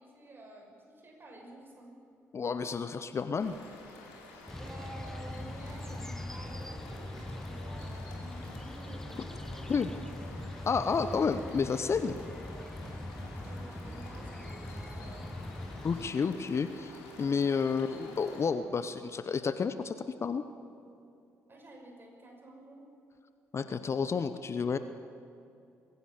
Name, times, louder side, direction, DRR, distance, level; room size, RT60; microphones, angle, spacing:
voice 1, 0.0-2.0 4.6-10.1 13.4-15.1 21.5-22.9, right 1 dB, 30° right, 2 dB, 6.0 m, -51 dB
voice 2, 2.3-3.5 9.7-9.9 10.7-12.2 15.8-16.9 17.2-19.9 20.2-20.4 23.5-24.8, left 5 dB, 40° left, 11 dB, 0.9 m, -30 dB
sound 1, 3.4-18.4, left 3 dB, 75° left, 3.4 m, -51 dB
sound 2, 4.5-16.1, left 1 dB, 5° left, 0.9 m, -41 dB
sound 3, 4.8-17.4, right 3 dB, 75° right, 2.4 m, -55 dB
22.0 x 16.5 x 7.5 m, 2.7 s
figure-of-eight pair, 45°, 7 cm